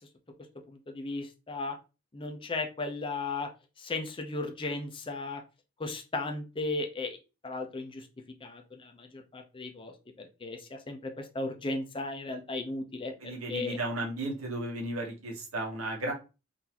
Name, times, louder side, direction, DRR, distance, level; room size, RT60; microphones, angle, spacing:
voice 1, 0.7-1.8 2.1-3.5 3.8-5.4 5.8-7.2 7.4-8.1 8.4-13.8, left 3 dB, 25° left, 4 dB, 0.6 m, -36 dB
voice 2, 13.2-16.1, right 1 dB, 85° right, 0 dB, 1.2 m, -34 dB
3.9 x 2.6 x 2.8 m, 0.30 s
head